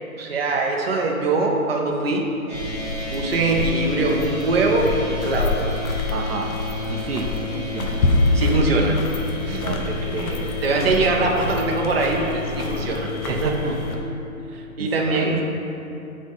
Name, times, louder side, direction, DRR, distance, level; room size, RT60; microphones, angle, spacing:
voice 1, 0.1-2.3 3.1-5.6 8.3-9.0 9.4-9.6 10.6-13.5 14.8-15.4, right 3 dB, 45° right, 0 dB, 0.7 m, -22 dB
sound 1, 2.5-14.0, left 2 dB, 70° left, 0.9 m, -27 dB
sound 2, 2.5-14.0, left 4 dB, 10° right, 1.3 m, -33 dB
voice 2, 6.1-6.6 6.9-8.1 9.3-10.6 13.3-13.8 14.5-15.4, right 4 dB, 85° right, 4 dB, 0.8 m, -31 dB
8.1 x 3.9 x 3.4 m, 2.8 s
hypercardioid pair, 165°, 43 cm